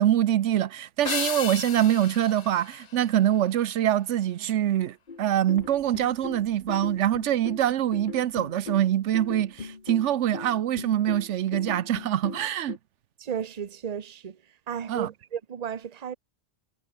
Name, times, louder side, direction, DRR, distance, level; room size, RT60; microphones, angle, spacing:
voice 1, 0.0-12.8 14.9-15.1, right 11 dB, 90° right, 1.0 m, -24 dB
sound 1, 1.0-3.7, left 7 dB, 75° left, 1.5 m, -35 dB
sound 2, 5.1-12.8, left 4 dB, 45° left, 1.6 m, -39 dB
Explosion, 5.6-10.3, equal, 15° right, 7.5 m, -61 dB
voice 2, 13.2-14.4 14.7-16.2, right 8 dB, 40° right, 0.9 m, -34 dB
omnidirectional pair, 1.2 m